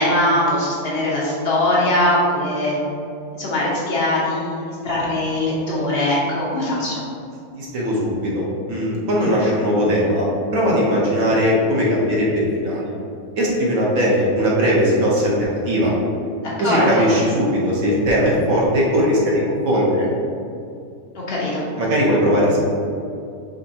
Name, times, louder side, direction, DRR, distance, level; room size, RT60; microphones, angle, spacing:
voice 1, 0.0-2.8 3.3-7.0 16.4-17.1 21.3-21.6, left 1 dB, 45° left, -6 dB, 0.9 m, -21 dB
voice 2, 7.6-10.3 10.5-12.9 13.3-15.9 16.6-20.1 21.8-22.6, equal, 55° right, -4 dB, 1.1 m, -19 dB
5.2 x 3.5 x 2.8 m, 2.5 s
omnidirectional pair, 2.0 m